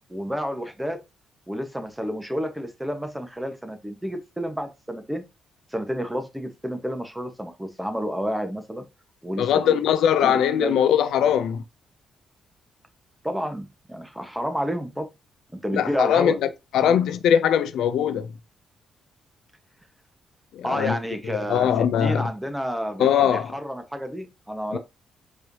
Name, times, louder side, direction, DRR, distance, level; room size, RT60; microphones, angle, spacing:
voice 1, 0.1-1.0 1.5-5.2 5.7-8.8 9.2-9.8 10.2-10.8 13.2-15.1 15.6-16.4 16.8-17.0 20.6-24.8, equal, 5° right, 1.1 m, -30 dB
voice 2, 9.4-11.6 15.7-16.3 16.7-18.3 20.5-21.0 21.3-22.3 23.0-23.5 24.7-24.8, left 9 dB, 80° left, 0.4 m, -21 dB
4.6 x 3.1 x 2.7 m
supercardioid pair, 60°, 0 cm